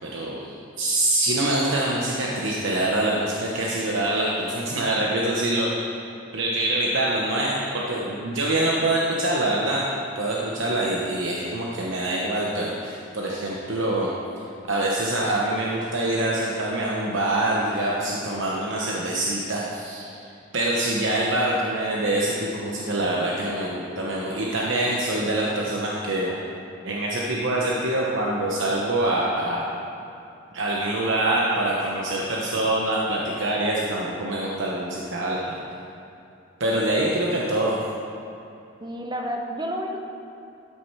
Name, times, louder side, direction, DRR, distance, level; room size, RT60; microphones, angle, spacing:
voice 1, 0.0-5.7 6.3-9.9 10.1-14.1 14.4-20.1 20.5-26.3 26.8-29.6 30.5-35.6 36.6-37.8, right 1 dB, 70° right, -4 dB, 1.0 m, -25 dB
voice 2, 38.8-40.0, equal, 20° right, 1 dB, 0.9 m, -30 dB
12.5 x 6.4 x 4.7 m, 2.7 s
head